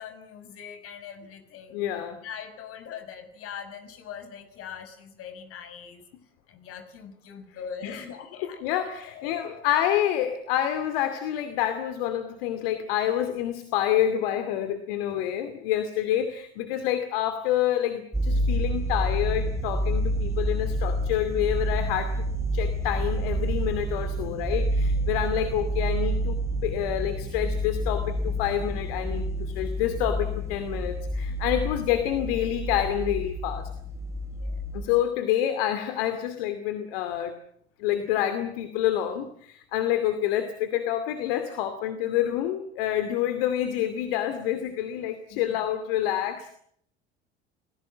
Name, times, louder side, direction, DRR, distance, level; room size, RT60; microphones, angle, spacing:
voice 1, 0.0-1.8 2.2-6.0 6.5-9.3 9.7-9.9 24.2-24.7 31.3-31.4 34.4-34.6 45.3-45.6, left 7 dB, 45° left, 9 dB, 5.8 m, -42 dB
voice 2, 1.7-2.2 7.8-8.0 8.6-22.3 22.5-33.7 34.7-37.4 37.8-46.5, left 11 dB, 60° left, 8 dB, 2.6 m, -28 dB
sound 1, 18.1-34.9, right 1 dB, 10° right, 5.6 m, -28 dB
29.5 x 20.0 x 7.6 m, 0.67 s
figure-of-eight pair, 65°, 31 cm